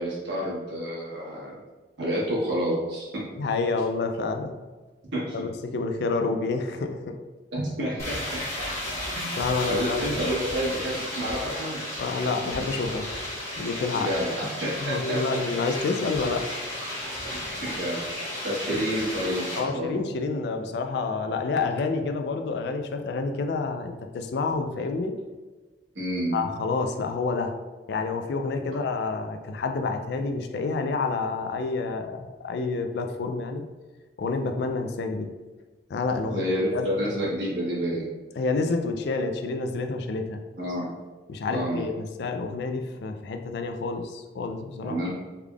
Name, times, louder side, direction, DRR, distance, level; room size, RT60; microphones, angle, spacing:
voice 1, 0.0-1.5 2.0-3.2 5.1-5.4 7.5-8.2 9.1-9.3 9.7-11.8 13.9-15.4 17.4-18.0 18.4-20.0 25.9-26.4 36.3-38.1 40.6-40.9 41.5-41.9 44.8-45.1, equal, 80° right, -6 dB, 1.3 m, -29 dB
voice 2, 3.4-4.5 5.3-7.1 9.4-10.3 12.0-13.1 13.6-14.1 14.8-16.5 18.7-18.8 19.6-25.1 26.3-27.5 27.9-33.6 34.2-35.3 35.9-36.4 36.7-36.9 38.4-40.4 41.3-44.9, left 3 dB, 60° left, 5 dB, 0.3 m, -28 dB
sound 1, 8.0-19.6, left 1 dB, 15° left, 1.3 m, -33 dB
3.4 x 3.4 x 2.3 m, 1.3 s
head